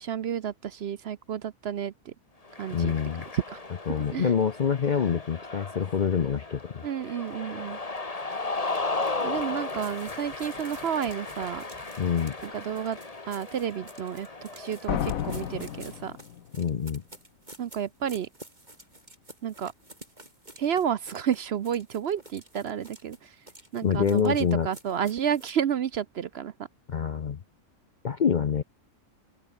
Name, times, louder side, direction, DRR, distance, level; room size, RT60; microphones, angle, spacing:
voice 1, 0.0-2.1 2.6-2.9 3.3-3.6 4.1-4.3 6.8-7.8 9.2-11.6 12.4-13.0 13.3-16.2 17.6-18.3 19.4-19.7 20.6-23.5 23.7-26.5, right 8 dB, 60° right, 0.8 m, -31 dB
Cheering, 2.4-15.9, left 3 dB, 25° left, 1.8 m, -36 dB
voice 2, 2.7-3.3 3.9-6.8 12.0-12.4 16.6-17.0 23.8-24.7 26.9-27.4 28.0-28.6, left 7 dB, 50° left, 0.6 m, -26 dB
sound 1, 9.8-25.6, right 1 dB, 30° right, 5.9 m, -50 dB
sound 2, 14.9-16.7, left 10 dB, 80° left, 1.3 m, -32 dB
open air
omnidirectional pair, 1.4 m